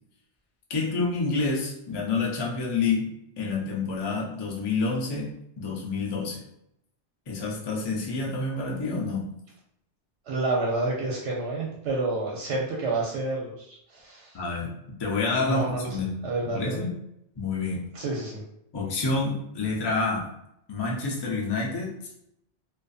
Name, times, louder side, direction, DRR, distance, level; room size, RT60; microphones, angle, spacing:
voice 1, 0.7-3.1 3.4-6.4 7.3-9.3 14.3-16.9 17.4-17.9 18.7-20.3 20.7-21.9, left 3 dB, 40° left, -2 dB, 0.3 m, -28 dB
voice 2, 10.3-14.4 15.4-15.9 16.2-16.9 17.9-18.4, right 2 dB, 80° right, -4 dB, 0.9 m, -29 dB
2.5 x 2.3 x 2.3 m, 0.78 s
omnidirectional pair, 1.2 m